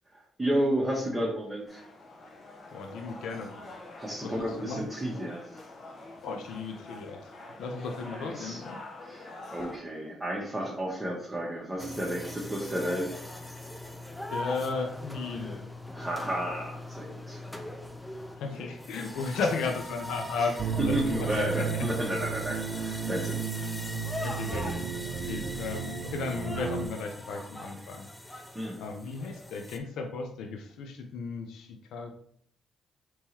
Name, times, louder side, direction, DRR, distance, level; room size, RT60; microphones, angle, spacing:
voice 1, 0.1-1.8 4.0-5.4 8.0-8.6 9.0-13.2 15.9-17.4 20.9-23.4 28.5-28.8, right 1 dB, 10° right, -4 dB, 1.0 m, -32 dB
sound 1, 1.7-9.8, left 2 dB, 50° left, 0.9 m, -46 dB
voice 2, 2.7-3.6 4.2-4.9 6.2-7.3 7.6-8.8 14.3-15.6 18.3-21.9 23.2-23.4 24.2-28.1 28.8-32.1, left 4 dB, 80° left, 4 dB, 0.5 m, -35 dB
sound 2, 11.8-29.8, left 1 dB, 10° left, 0.5 m, -41 dB
sound 3, 20.6-26.9, right 6 dB, 65° right, 0.4 m, -33 dB
3.6 x 3.0 x 4.3 m, 0.65 s
cardioid pair, 90°, 0 cm